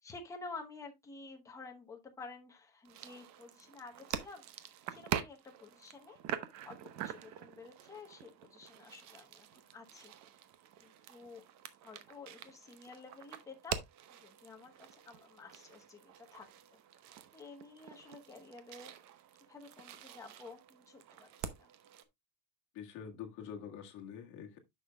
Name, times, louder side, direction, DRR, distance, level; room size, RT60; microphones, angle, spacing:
voice 1, 0.0-4.4 4.9-6.2 6.6-6.8 7.0-10.1 10.8-13.8 14.1-16.8 17.3-18.9 19.5-21.7, left 4 dB, 10° left, 0.9 m, -51 dB
sound 1, 2.9-22.0, right 10 dB, 45° right, 0.8 m, -46 dB
voice 2, 22.7-24.6, left 8 dB, 45° left, 1.7 m, -46 dB
9.8 x 6.6 x 2.3 m
cardioid pair, 175°, 41 cm